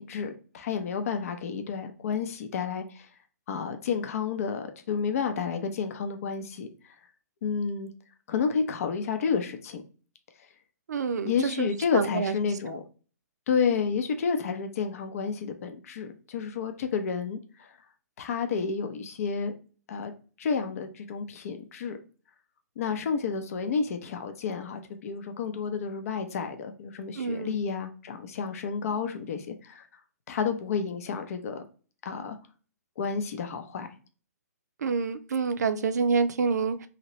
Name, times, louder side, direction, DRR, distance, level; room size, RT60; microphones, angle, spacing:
voice 1, 0.0-3.1 3.5-6.7 7.4-7.9 8.3-9.8 11.2-12.8 13.5-17.7 18.2-19.5 19.9-20.1 20.4-22.0 22.8-29.9 30.3-31.6 32.0-32.4 33.0-33.9, left 6 dB, 55° left, 0.6 m, -30 dB
voice 2, 10.9-12.4 12.7-12.8 27.2-27.6 34.8-36.9, right 5 dB, 75° right, 0.5 m, -28 dB
2.9 x 2.8 x 2.9 m
hypercardioid pair, 135°, 9 cm